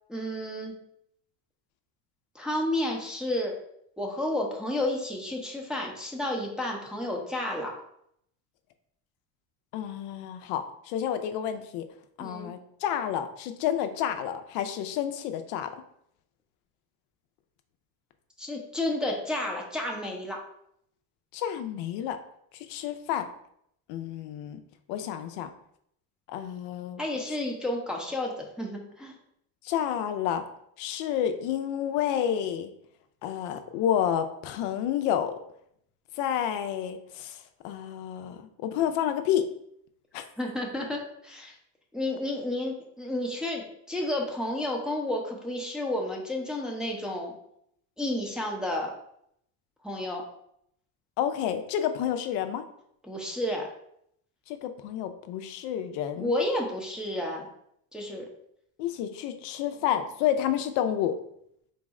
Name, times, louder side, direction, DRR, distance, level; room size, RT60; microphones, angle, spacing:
voice 1, 0.1-0.7 2.3-3.5 4.0-7.7 12.2-12.5 18.4-20.4 27.0-29.1 40.4-41.5 41.9-47.3 48.0-48.9 49.8-50.2 53.0-53.7 56.2-57.5 57.9-58.3, left 1 dB, ahead, -2 dB, 0.6 m, -31 dB
voice 2, 9.7-11.8 12.2-15.7 21.3-22.2 22.7-23.3 23.9-24.6 24.9-25.5 26.3-27.0 29.6-30.4 30.8-32.7 33.2-35.4 36.2-39.4 40.1-40.2 51.2-52.6 54.5-56.3 58.8-61.2, left 10 dB, 75° left, 8 dB, 0.5 m, -30 dB
4.0 x 2.0 x 3.5 m, 0.72 s
supercardioid pair, 100°, 41 cm